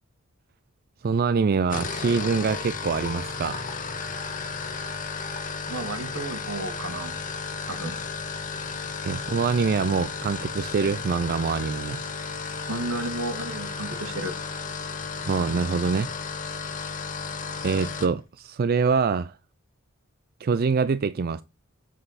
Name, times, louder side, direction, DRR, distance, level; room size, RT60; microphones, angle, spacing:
voice 1, 1.0-3.7 9.0-12.0 15.3-16.1 17.6-19.3 20.4-21.4, right 5 dB, 45° right, 0.4 m, -25 dB
sound 1, 1.7-18.1, left 4 dB, 40° left, 1.4 m, -33 dB
voice 2, 5.7-7.2 7.7-8.0 12.7-14.4, right 2 dB, 75° right, 1.6 m, -33 dB
7.8 x 7.6 x 4.1 m
head